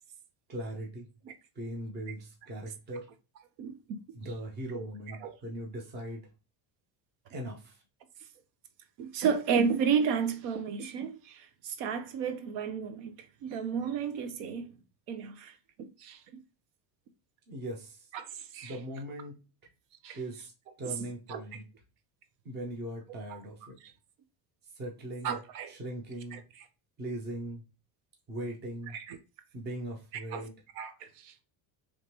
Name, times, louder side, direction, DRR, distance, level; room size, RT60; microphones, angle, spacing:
voice 1, 0.5-1.1 1.6-3.1 4.1-6.3 7.3-7.8 17.5-18.1 18.6-19.4 20.1-20.5 20.8-21.6 22.4-23.8 24.8-25.4 25.7-26.4 27.0-27.6 28.3-29.0 29.5-30.5, right 1 dB, 25° right, 0.6 m, -39 dB
voice 2, 3.6-4.0 4.7-4.9 5.2-5.4 9.0-13.2 13.4-14.7 15.1-16.2 18.1-18.7 20.0-20.2 20.8-20.9 21.3-21.6 23.8-23.9 25.2-25.7 26.3-26.4 28.9-29.2 30.3-30.4 30.8-31.3, right 6 dB, 80° right, 0.7 m, -32 dB
3.4 x 3.1 x 2.9 m
cardioid pair, 180°, 46 cm